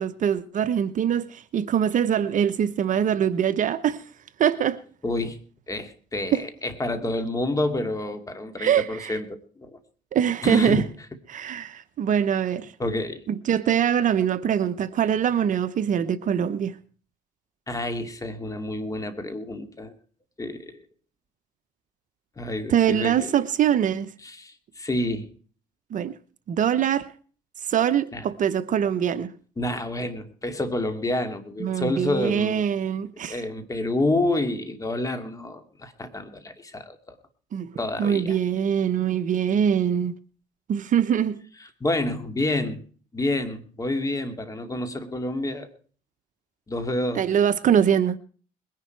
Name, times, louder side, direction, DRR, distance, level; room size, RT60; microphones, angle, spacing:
voice 1, 0.0-4.0 4.4-4.8 6.3-6.4 8.6-9.2 10.1-10.8 11.3-12.7 13.3-16.8 22.7-24.1 25.9-26.1 26.5-27.1 27.7-29.3 31.6-33.4 37.5-37.7 38.0-40.2 40.7-41.4 47.2-48.2, right 9 dB, 50° right, 0.9 m, -23 dB
voice 2, 5.0-5.4 5.7-9.8 10.4-10.9 12.8-13.2 17.7-19.9 20.4-20.8 22.4-23.5 24.2-25.3 28.1-28.2 29.6-32.6 33.3-37.2 37.8-38.4 41.8-42.8 43.1-45.7 46.7-47.3, left 2 dB, 20° left, 2.6 m, -28 dB
21.0 x 11.0 x 4.6 m
cardioid pair, 110°, 17 cm